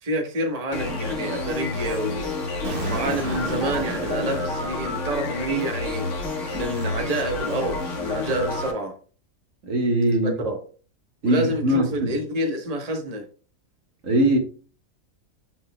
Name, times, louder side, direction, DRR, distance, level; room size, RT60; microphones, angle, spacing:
voice 1, 0.0-2.3 2.8-6.1 6.5-8.9 10.1-10.6 11.2-13.3, right 1 dB, 30° right, 1.2 m, -28 dB
sound 1, 0.7-8.7, left 3 dB, 60° left, 1.7 m, -29 dB
Explosion, 2.6-5.6, right 4 dB, 45° right, 1.1 m, -34 dB
voice 2, 9.6-10.3 11.2-12.2 14.0-14.4, right 1 dB, 65° right, 1.8 m, -21 dB
8.1 x 6.3 x 2.2 m
omnidirectional pair, 1.5 m